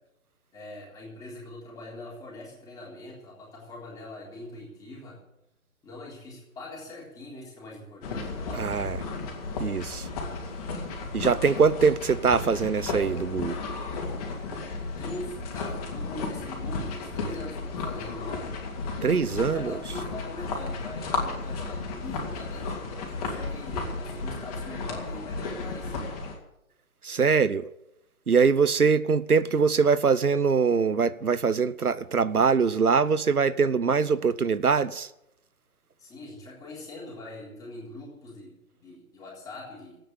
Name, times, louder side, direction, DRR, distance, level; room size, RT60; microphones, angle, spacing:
voice 1, 0.5-5.2 5.8-9.0 15.0-18.5 19.4-26.0 36.0-40.0, left 2 dB, 10° left, 3.8 m, -42 dB
sound 1, 8.0-26.4, left 3 dB, 25° left, 2.9 m, -34 dB
voice 2, 8.6-9.0 9.6-10.1 11.1-13.6 19.0-19.7 27.0-27.6 28.3-35.1, right 5 dB, 90° right, 0.8 m, -23 dB
14.0 x 9.3 x 9.2 m
figure-of-eight pair, 145°, 43 cm